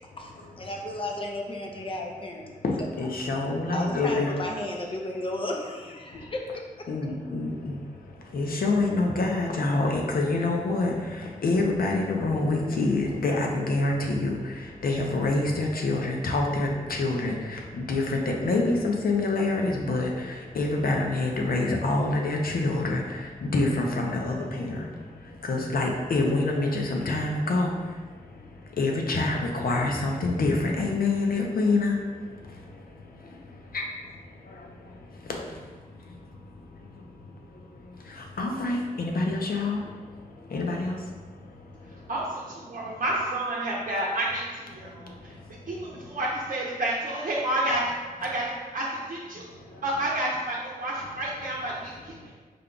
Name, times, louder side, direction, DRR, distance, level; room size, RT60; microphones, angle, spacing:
voice 1, 0.6-2.6 3.7-6.6, left 1 dB, 35° left, 1 dB, 0.6 m, -33 dB
voice 2, 2.6-4.3 6.9-7.8 8.3-10.9 11.4-14.4 14.8-23.0 23.4-24.8 25.4-27.7 28.8-32.0 33.7-33.9 38.4-39.8 40.5-41.0, left 2 dB, 80° left, 1 dB, 0.7 m, -26 dB
voice 3, 42.1-45.4 45.7-49.5 49.8-52.3, right 1 dB, 65° right, -5 dB, 0.7 m, -30 dB
5.1 x 2.3 x 3.8 m, 1.4 s
wide cardioid pair, 105°, 15 cm